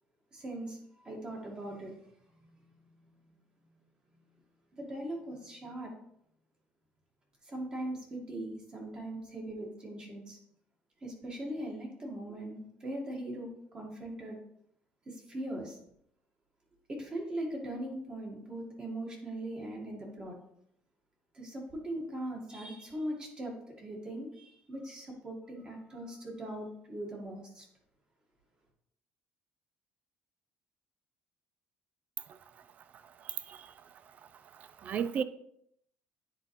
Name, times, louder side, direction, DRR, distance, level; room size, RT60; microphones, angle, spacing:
voice 1, 0.3-2.0 2.4-3.3 4.8-5.9 7.4-10.4 11.0-14.4 15.0-15.8 16.9-20.3 21.3-27.6, right 1 dB, 25° right, 1.8 m, -40 dB
voice 2, 33.2-33.7 34.6-35.2, right 7 dB, 45° right, 0.4 m, -34 dB
9.6 x 3.9 x 3.2 m
cardioid pair, 125°, 4 cm